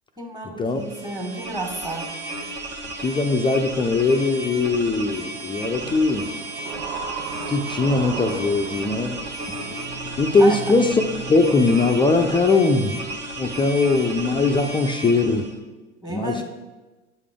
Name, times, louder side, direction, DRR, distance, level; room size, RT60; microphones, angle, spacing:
voice 1, 0.2-2.1 10.4-10.6 16.0-16.4, right 2 dB, 10° right, 2 dB, 1.6 m, -31 dB
sound 1, 0.8-15.6, right 2 dB, 45° right, 1.2 m, -34 dB
voice 2, 3.0-6.3 7.5-9.2 9.5-9.8 10.2-11.0 11.3-13.1 13.4-15.4 16.1-16.4, left 3 dB, 15° left, 4 dB, 0.4 m, -20 dB
sound 2, 5.8-11.6, right 5 dB, 80° right, 0.6 m, -36 dB
8.1 x 4.9 x 3.6 m, 1.2 s
hypercardioid pair, 75°, 35 cm